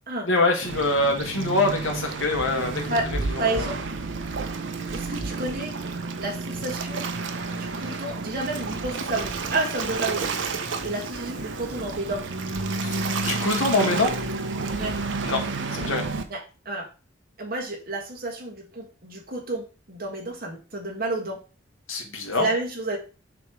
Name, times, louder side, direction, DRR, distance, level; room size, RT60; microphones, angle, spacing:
voice 1, 0.2-2.8 3.3-3.7 12.8-14.1 15.2-15.4 15.7-16.0 21.9-22.5, left 2 dB, 90° left, 2 dB, 1.6 m, -24 dB
Waves surf, 0.6-16.2, right 3 dB, 65° right, 0.8 m, -30 dB
voice 2, 3.4-3.8 4.9-5.7 6.2-7.0 7.4-10.3 10.8-12.3 14.7-15.0 16.3-16.9 17.4-21.4 22.3-23.0, right 2 dB, 45° right, 0 dB, 1.7 m, -30 dB
7.1 x 3.1 x 4.8 m, 0.34 s
head